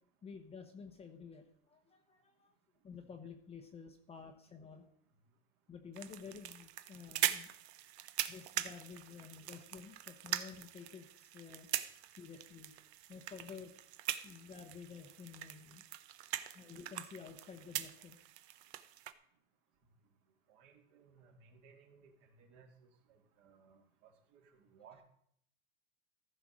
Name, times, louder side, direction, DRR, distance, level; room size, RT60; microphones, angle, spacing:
voice 1, 0.2-2.5 2.8-4.9 5.7-7.7 8.3-11.7 12.1-12.8 13.1-13.7 14.2-15.8 16.5-18.2, left 6 dB, 15° left, 6 dB, 0.9 m, -51 dB
sound 1, 5.9-19.1, right 13 dB, 65° right, 0.9 m, -42 dB
voice 2, 20.5-22.7 23.1-25.0, right 6 dB, 50° right, 3 dB, 2.2 m, -62 dB
14.5 x 5.1 x 6.1 m, 0.68 s
supercardioid pair, 135°, 35 cm